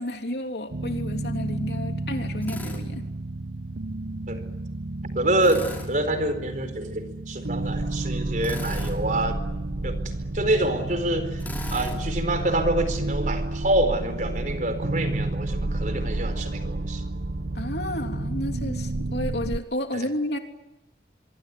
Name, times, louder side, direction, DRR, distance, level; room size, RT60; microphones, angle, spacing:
voice 1, 0.0-3.1 17.5-20.4, left 1 dB, 70° left, 4 dB, 3.3 m, -31 dB
sound 1, 0.7-19.6, right 2 dB, 70° right, 1.0 m, -30 dB
Drill, 2.4-2.8 5.4-5.9 8.4-9.0 11.4-12.0, left 1 dB, 10° left, 5.7 m, -37 dB
voice 2, 5.1-9.4 9.8-10.0 10.3-11.4 11.7-17.0 19.9-20.1, right 1 dB, 45° right, 9 dB, 4.4 m, -26 dB
25.0 x 23.5 x 9.6 m, 0.95 s
head